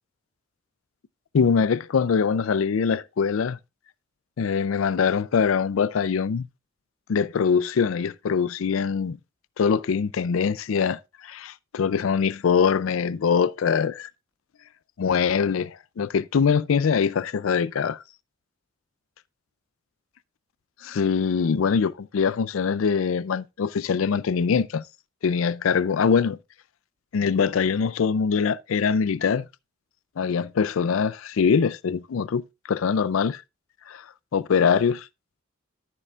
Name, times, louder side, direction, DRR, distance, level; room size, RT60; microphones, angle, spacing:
voice 1, 1.3-3.6 4.4-6.5 7.1-9.2 9.6-14.1 15.0-18.0 20.8-24.8 25.2-26.4 27.1-29.5 30.2-33.4 33.9-34.0 34.3-35.1, left 6 dB, 90° left, 0.4 m, -23 dB
13.0 x 6.8 x 2.4 m
head